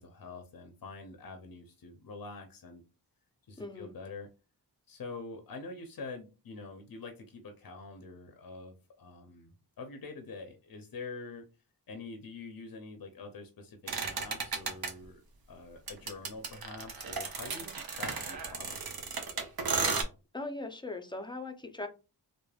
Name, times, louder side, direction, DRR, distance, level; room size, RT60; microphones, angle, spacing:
voice 1, 0.0-2.8 3.5-4.3 4.9-9.5 9.8-11.5 11.9-15.2 15.5-19.5, left 3 dB, 55° left, 0.6 m, -46 dB
voice 2, 3.6-3.9 20.3-21.9, left 2 dB, 10° left, 0.5 m, -39 dB
sound 1, 13.9-14.9 15.9-20.0, right 5 dB, 60° right, 0.7 m, -34 dB
3.3 x 2.1 x 2.3 m
cardioid pair, 45°, 41 cm